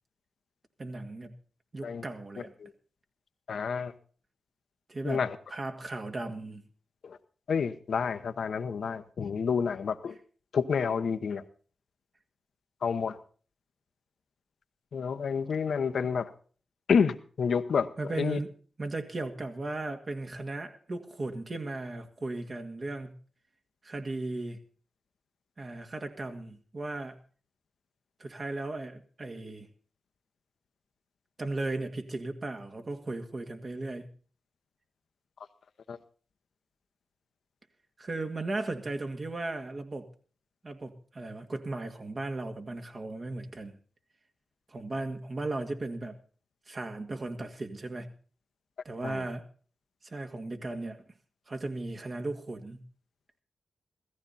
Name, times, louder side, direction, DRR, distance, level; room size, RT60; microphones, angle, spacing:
voice 1, 0.8-1.4 1.7-2.5 4.9-5.2 5.5-6.6 18.0-18.5 18.8-23.1 23.8-24.6 25.6-27.2 28.2-29.7 31.4-34.1 38.0-40.1 40.6-43.8 44.7-46.2 46.7-48.2 48.9-49.5 50.0-51.0 51.5-52.8, right 2 dB, 50° right, 6 dB, 2.0 m, -36 dB
voice 2, 3.5-3.9 5.0-5.4 7.0-7.2 7.5-10.2 10.5-11.4 12.8-13.2 14.9-16.3 16.9-18.4 35.9-36.0 49.0-49.3, left 6 dB, 75° left, 10 dB, 0.9 m, -29 dB
16.0 x 14.0 x 4.1 m, 0.41 s
cardioid pair, 45°, 0 cm